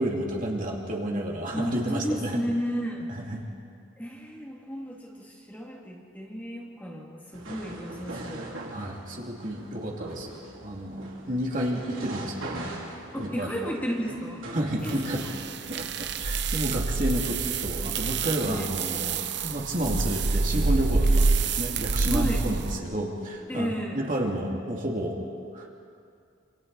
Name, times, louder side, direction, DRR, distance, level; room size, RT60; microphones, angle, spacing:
voice 1, 0.0-2.4 3.1-3.4 8.7-12.7 13.2-13.5 14.5-15.4 15.7-25.2 25.5-25.8, right 1 dB, 40° right, -1 dB, 2.6 m, -31 dB
voice 2, 1.5-3.1 4.0-8.5 13.1-14.4 14.8-15.3 18.5-18.7 22.1-22.4 23.5-24.0, equal, 10° left, -2 dB, 2.5 m, -32 dB
sound 1, 7.3-15.2, right 1 dB, 75° right, 4.1 m, -41 dB
sound 2, 14.9-22.8, right 4 dB, 55° right, 0.9 m, -27 dB
27.5 x 27.0 x 4.1 m, 2.3 s
head